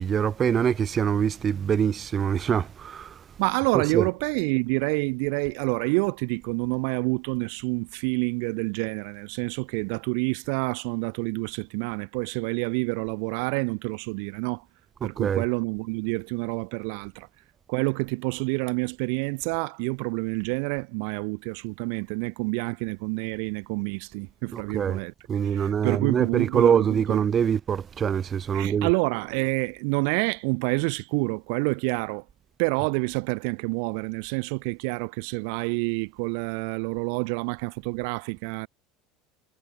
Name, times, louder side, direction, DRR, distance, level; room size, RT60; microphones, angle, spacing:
voice 1, 0.0-3.1 3.9-4.0 15.2-15.4 24.5-25.0 25.3-28.9, right 8 dB, 30° right, 1.3 m, -24 dB
voice 2, 3.4-14.6 15.0-17.3 17.7-25.1 25.4-27.2 28.5-32.2 32.6-38.7, right 38 dB, 75° right, 4.4 m, -28 dB
supercardioid pair, 130°, 0 cm